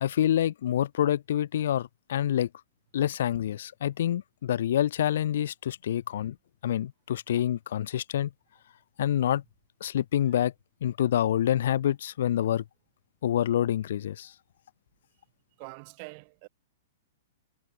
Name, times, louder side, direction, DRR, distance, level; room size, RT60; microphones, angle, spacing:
voice 1, 0.0-2.5 2.9-6.3 6.6-8.3 9.0-9.4 9.8-10.5 10.8-12.6 13.2-14.3, left 11 dB, 65° left, 0.5 m, -27 dB
voice 2, 15.6-16.5, right 37 dB, 35° right, 6.1 m, -44 dB
hypercardioid pair, 160°, 0 cm